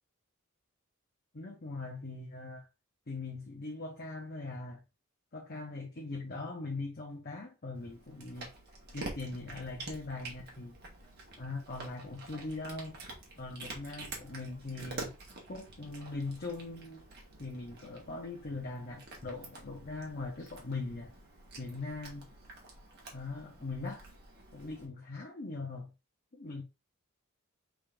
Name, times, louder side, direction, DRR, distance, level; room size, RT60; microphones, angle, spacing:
voice 1, 1.3-2.7 3.1-4.8 5.3-8.5 8.9-10.7 11.4-13.0 13.4-15.1 15.5-17.0 17.4-21.1 21.6-22.3 23.1-24.0 24.5-25.9 26.3-26.6, left 3 dB, 45° left, 0.9 m, -41 dB
Cat, 7.7-24.9, right 2 dB, 45° right, 1.4 m, -48 dB
5.1 x 3.7 x 2.5 m
head